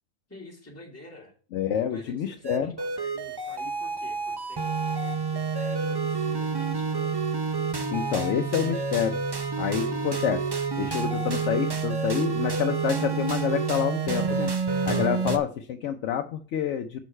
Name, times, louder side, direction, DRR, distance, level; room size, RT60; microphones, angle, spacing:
voice 1, 0.3-1.3 1.9-7.3, left 1 dB, 10° left, -3 dB, 2.0 m, -48 dB
voice 2, 1.5-2.7 7.9-9.2 9.6-10.5 10.8-14.5 14.9-17.0, left 9 dB, 80° left, 5 dB, 0.9 m, -28 dB
sound 1, 2.4-15.4, right 5 dB, 30° right, 0.5 m, -28 dB
6.4 x 6.0 x 4.3 m, 0.41 s
omnidirectional pair, 1.2 m